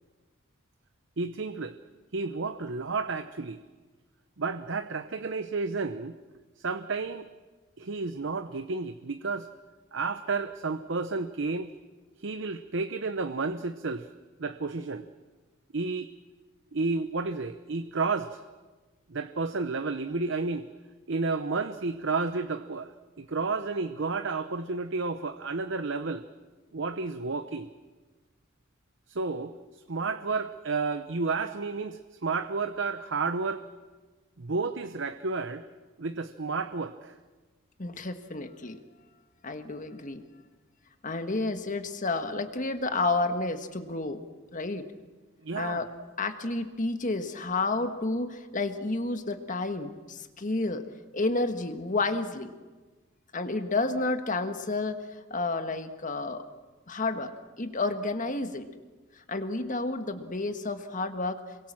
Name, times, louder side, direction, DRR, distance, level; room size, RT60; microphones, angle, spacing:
voice 1, 1.2-1.8 2.1-3.6 4.4-6.2 6.6-7.3 7.8-9.5 9.9-11.7 12.2-14.1 14.4-15.1 15.7-16.1 16.7-18.4 19.1-20.7 21.1-26.2 26.7-27.7 29.1-29.5 29.9-33.6 34.4-35.6 36.0-37.2 45.4-45.9, right 4 dB, 60° right, 10 dB, 0.8 m, -31 dB
voice 2, 37.8-38.8 39.4-40.2 41.0-44.2 44.5-44.9 45.5-45.9 46.2-50.8 51.1-52.5 53.3-56.4 56.9-57.3 57.6-58.7 59.2-61.4, left 3 dB, 40° left, 8 dB, 1.6 m, -30 dB
27.5 x 23.0 x 7.4 m, 1.3 s
head